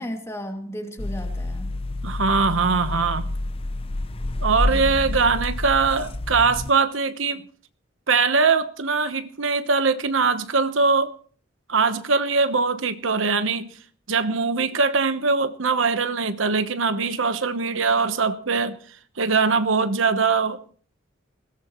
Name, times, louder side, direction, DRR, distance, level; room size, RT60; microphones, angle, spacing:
voice 1, 0.0-1.7 4.7-5.3, equal, 15° left, 2.5 m, -35 dB
sound 1, 1.0-6.7, left 2 dB, 30° left, 0.6 m, -28 dB
voice 2, 2.0-3.3 4.4-7.5 8.1-11.1 11.7-13.7 14.1-18.8 19.2-20.6, right 4 dB, 80° right, 1.1 m, -22 dB
20.5 x 17.0 x 3.1 m
head